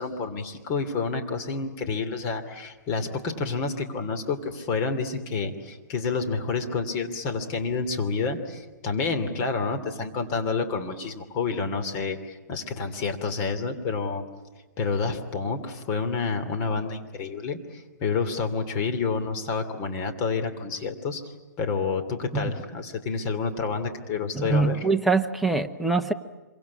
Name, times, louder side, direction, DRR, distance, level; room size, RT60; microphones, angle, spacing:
voice 1, 0.0-14.2 14.8-24.8, left 4 dB, 30° left, 6 dB, 2.7 m, -29 dB
voice 2, 24.3-26.1, right 3 dB, ahead, 4 dB, 1.0 m, -24 dB
26.5 x 24.0 x 8.5 m, 1.2 s
hypercardioid pair, 150°, 10 cm